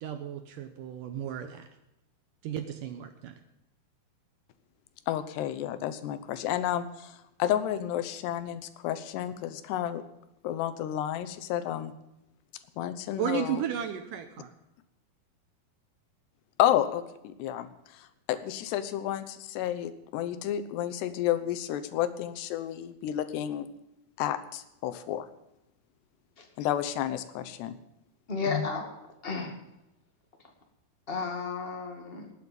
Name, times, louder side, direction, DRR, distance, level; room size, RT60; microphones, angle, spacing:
voice 1, 0.0-1.7 2.4-3.3 13.2-14.5, right 9 dB, 75° right, 8 dB, 2.1 m, -34 dB
voice 2, 5.1-7.1 7.4-10.0 10.4-11.9 12.8-13.6 16.6-23.7 24.2-25.3 26.6-27.8, left 11 dB, 90° left, 12 dB, 3.1 m, -31 dB
voice 3, 28.3-28.9 29.2-29.5 31.1-32.3, left 5 dB, 40° left, 3 dB, 0.8 m, -32 dB
19.0 x 8.6 x 5.3 m, 0.89 s
omnidirectional pair, 4.7 m